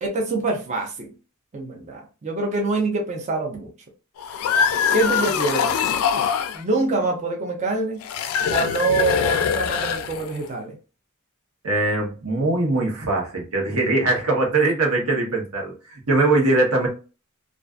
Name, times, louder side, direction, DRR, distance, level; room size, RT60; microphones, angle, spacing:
voice 1, 0.0-1.1 1.5-3.7 4.9-5.8 6.5-8.0 8.5-10.8, right 3 dB, 35° right, 0.5 m, -25 dB
sound 1, 4.2-6.6 8.0-10.5, left 7 dB, 75° left, 0.3 m, -23 dB
voice 2, 11.6-16.9, right 2 dB, 90° right, 0.9 m, -21 dB
2.4 x 2.4 x 2.3 m
head